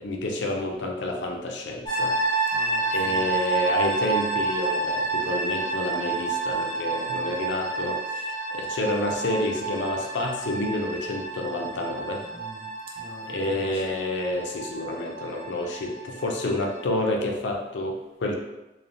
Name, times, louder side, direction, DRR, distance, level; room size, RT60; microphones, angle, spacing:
voice 1, 0.0-2.1 2.9-12.2 13.2-18.4, left 2 dB, 90° left, 1 dB, 0.5 m, -29 dB
sound 1, 1.9-16.8, right 3 dB, 20° left, 0.7 m, -29 dB
voice 2, 2.5-3.4 12.3-13.8, right 1 dB, 30° right, -2 dB, 0.5 m, -45 dB
3.1 x 2.2 x 2.5 m, 1.0 s
head